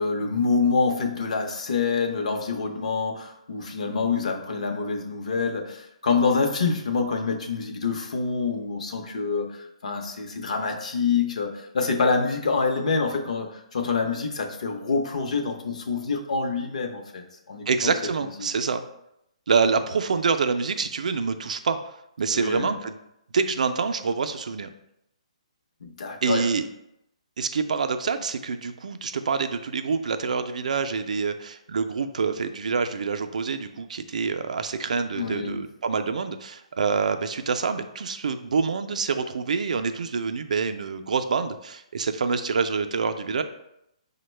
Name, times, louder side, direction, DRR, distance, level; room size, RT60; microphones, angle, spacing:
voice 1, 0.0-17.9 18.2-18.3 22.3-22.8 25.8-26.5 35.1-35.5, left 4 dB, 65° left, 4 dB, 0.7 m, -26 dB
voice 2, 17.7-18.8 19.5-21.8 22.2-23.0 23.3-24.7 26.2-26.7 27.4-43.4, right 5 dB, 80° right, 8 dB, 0.3 m, -26 dB
5.2 x 2.1 x 3.2 m, 0.81 s
hypercardioid pair, 165°, 4 cm